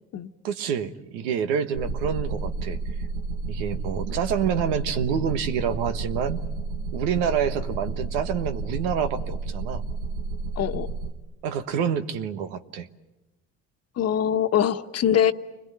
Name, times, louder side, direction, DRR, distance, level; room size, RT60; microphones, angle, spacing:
voice 1, 0.4-2.8 3.5-6.4 6.9-9.8 11.4-12.9, right 7 dB, 90° right, 10 dB, 1.3 m, -27 dB
sound 1, 1.7-11.1, right 3 dB, 70° right, 1.9 m, -31 dB
voice 2, 10.6-10.9 14.0-15.3, left 9 dB, 55° left, 9 dB, 1.2 m, -23 dB
29.0 x 21.5 x 9.4 m, 1.0 s
supercardioid pair, 80°, 31 cm